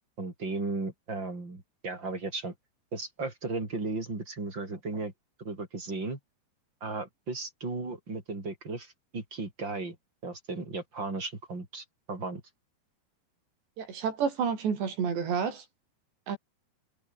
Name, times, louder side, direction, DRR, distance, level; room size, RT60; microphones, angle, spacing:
voice 1, 0.2-2.5 2.9-5.1 5.4-6.2 6.8-10.0 10.2-12.4, right 3 dB, 25° right, 6.1 m, -35 dB
voice 2, 13.8-15.7 16.3-16.4, right 6 dB, 70° right, 6.9 m, -29 dB
omnidirectional pair, 5.3 m